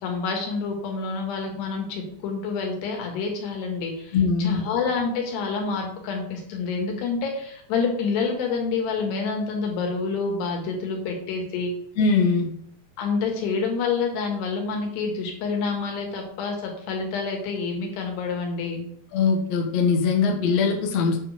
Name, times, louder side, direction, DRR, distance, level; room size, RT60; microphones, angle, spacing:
voice 1, 0.0-11.7 13.0-18.9, left 4 dB, 75° left, 1 dB, 3.8 m, -28 dB
voice 2, 4.1-4.6 12.0-12.5 19.1-21.2, left 5 dB, 60° left, 1 dB, 1.8 m, -21 dB
8.8 x 5.3 x 5.1 m, 0.67 s
omnidirectional pair, 4.9 m